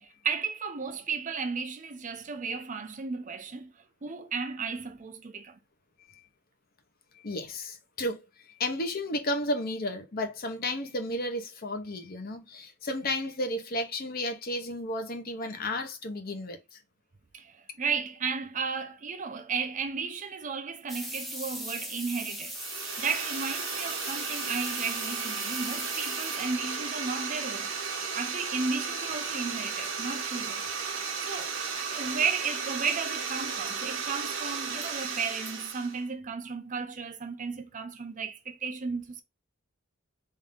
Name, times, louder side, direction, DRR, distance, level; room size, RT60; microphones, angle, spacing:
voice 1, 0.0-3.7 4.0-5.6 17.3-22.6 23.0-27.7 28.1-30.6 31.2-39.2, right 5 dB, 40° right, 0.5 m, -34 dB
voice 2, 7.1-16.8, left 1 dB, 45° left, 0.8 m, -33 dB
sound 1, 20.9-26.8 29.6-29.7 29.8-29.9 30.5-30.6 30.7-30.8 31.3-31.5 32.9-33.2 33.7-33.8 34.4-34.9 35.5-35.6, equal, ahead, 0.8 m, -39 dB
sound 2, 22.5-36.0, right 5 dB, 65° right, 0.9 m, -34 dB
3.7 x 2.6 x 3.6 m
head